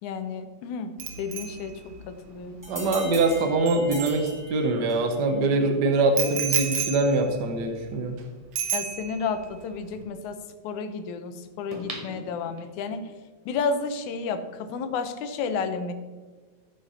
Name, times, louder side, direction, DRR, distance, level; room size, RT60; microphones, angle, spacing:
voice 1, 0.0-2.6 8.7-13.1 13.5-15.9, left 5 dB, 80° left, 9 dB, 2.3 m, -32 dB
Bicycle bell, 1.0-4.8 6.2-8.2 8.6-9.4 9.7-10.0, right 7 dB, 55° right, 1.9 m, -33 dB
sound 1, 2.6-5.2, equal, 5° right, 2.0 m, -40 dB
voice 2, 2.7-8.2, right 2 dB, 70° right, 5 dB, 1.0 m, -23 dB
sound 2, 11.7-13.0 13.5-13.6, right 1 dB, 25° right, 0.7 m, -39 dB
14.0 x 5.5 x 5.6 m, 1.4 s
omnidirectional pair, 3.4 m